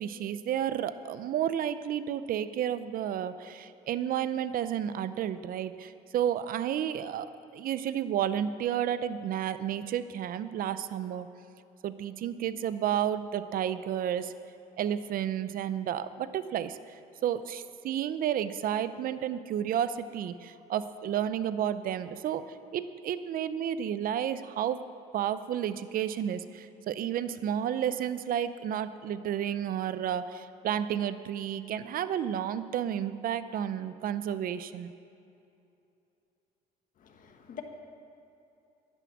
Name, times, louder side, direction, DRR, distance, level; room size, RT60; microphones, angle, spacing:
voice 1, 0.0-11.3 11.8-14.3 14.8-16.9 17.2-24.9 25.1-34.9, right 10 dB, 60° right, 13 dB, 0.6 m, -31 dB
voice 2, 37.0-37.6, left 10 dB, 50° left, 4 dB, 1.6 m, -45 dB
11.0 x 10.5 x 7.2 m, 2.8 s
cardioid pair, 110°, 17 cm